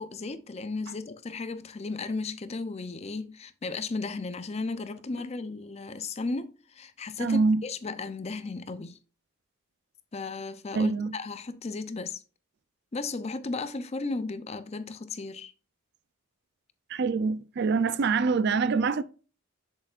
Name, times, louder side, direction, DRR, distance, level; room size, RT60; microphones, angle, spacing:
voice 1, 0.0-9.0 10.1-12.2 12.9-15.5, left 3 dB, 30° left, 0.4 m, -35 dB
voice 2, 7.2-7.6 10.7-11.1 16.9-19.0, right 4 dB, 50° right, 0.4 m, -25 dB
7.7 x 7.1 x 2.4 m
head